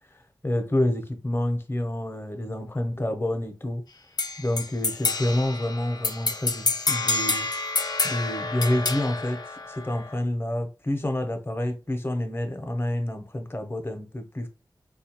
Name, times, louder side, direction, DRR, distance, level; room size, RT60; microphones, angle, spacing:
voice 1, 0.4-3.8 4.4-7.5 8.0-9.4 9.7-14.5, left 1 dB, 30° left, 0.7 m, -28 dB
sound 1, 4.2-10.2, left 3 dB, 60° left, 0.5 m, -28 dB
3.9 x 2.3 x 2.9 m
wide cardioid pair, 50°, 8 cm